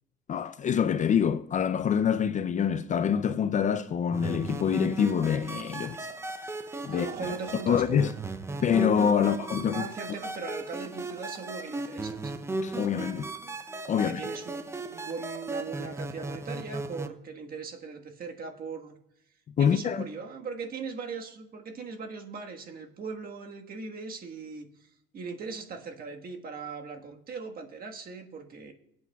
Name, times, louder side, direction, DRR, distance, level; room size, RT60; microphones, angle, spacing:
voice 1, 0.3-6.1 6.8-7.3 7.7-8.1 8.6-9.8 12.6-13.3 13.9-14.2 19.6-20.0, left 8 dB, 35° left, 0.5 m, -26 dB
sound 1, 4.1-17.1, right 3 dB, 10° right, 0.6 m, -36 dB
voice 2, 6.9-8.1 9.2-12.3 13.9-19.0 19.6-28.7, right 4 dB, 45° right, 1.5 m, -39 dB
24.0 x 8.6 x 2.3 m
cardioid pair, 115°, 21 cm